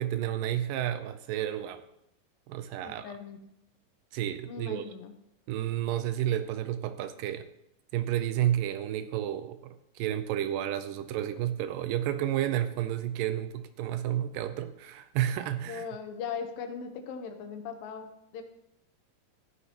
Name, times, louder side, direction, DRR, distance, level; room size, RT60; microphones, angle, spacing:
voice 1, 0.0-1.8 2.5-3.1 4.1-4.9 5.5-7.5 7.9-15.9, right 11 dB, 80° right, 10 dB, 2.2 m, -31 dB
voice 2, 2.8-3.4 4.5-5.1 15.7-18.4, left 6 dB, 80° left, 5 dB, 2.6 m, -39 dB
14.0 x 9.5 x 2.9 m, 0.80 s
omnidirectional pair, 4.1 m